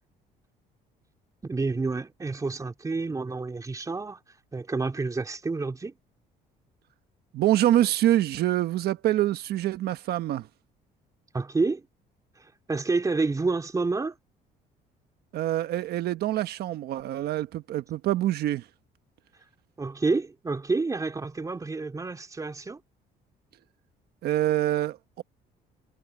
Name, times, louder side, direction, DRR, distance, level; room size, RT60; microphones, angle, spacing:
voice 1, 1.4-4.2 4.5-5.9 11.3-11.8 12.4-14.1 19.8-22.8, right 3 dB, 20° right, 3.1 m, -29 dB
voice 2, 7.3-10.5 15.3-18.6 24.2-25.2, right 13 dB, 70° right, 1.3 m, -25 dB
cardioid pair, 110°, 17 cm